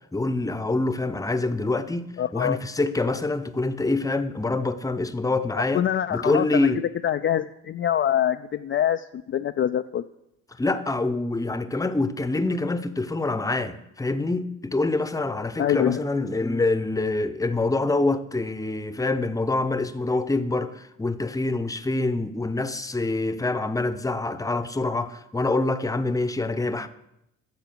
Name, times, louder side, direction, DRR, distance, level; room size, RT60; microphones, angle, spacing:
voice 1, 0.1-5.8 6.1-6.8 10.6-26.9, left 2 dB, 10° left, 0.8 m, -25 dB
voice 2, 2.2-2.6 5.7-6.7 7.0-10.0 15.6-16.0, left 10 dB, 40° left, 0.4 m, -24 dB
10.5 x 7.0 x 6.9 m
cardioid pair, 90°, 30 cm